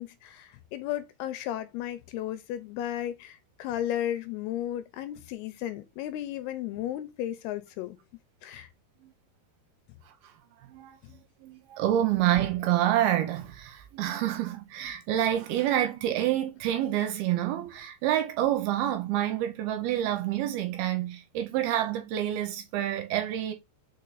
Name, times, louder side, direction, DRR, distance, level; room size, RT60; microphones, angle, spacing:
voice 1, 0.0-8.0 8.4-8.7, left 12 dB, 80° left, 2.5 m, -34 dB
voice 2, 10.7-23.5, right 12 dB, 80° right, 2.4 m, -28 dB
5.4 x 4.4 x 4.0 m
omnidirectional pair, 4.8 m